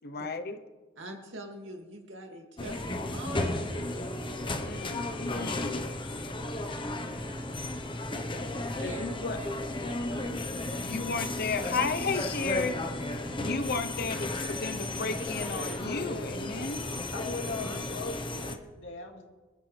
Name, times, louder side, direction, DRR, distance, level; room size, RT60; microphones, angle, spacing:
voice 1, 0.0-0.6 4.5-5.9 8.8-9.4 10.8-12.8 13.4-16.8, left 4 dB, 55° left, 9 dB, 1.0 m, -33 dB
voice 2, 1.0-4.1 8.2-9.1 9.4-9.8 10.1-10.3 16.5-17.9, right 1 dB, 75° right, 2 dB, 2.5 m, -45 dB
sound 1, 2.6-18.6, left 2 dB, 25° left, 1.1 m, -34 dB
sound 2, 8.9-10.5 11.8-13.6 15.1-15.8, equal, ahead, 1.4 m, -52 dB
voice 3, 15.8-16.3 17.1-19.3, left 3 dB, 70° left, 1 dB, 2.6 m, -39 dB
26.0 x 13.0 x 3.4 m, 1.3 s
head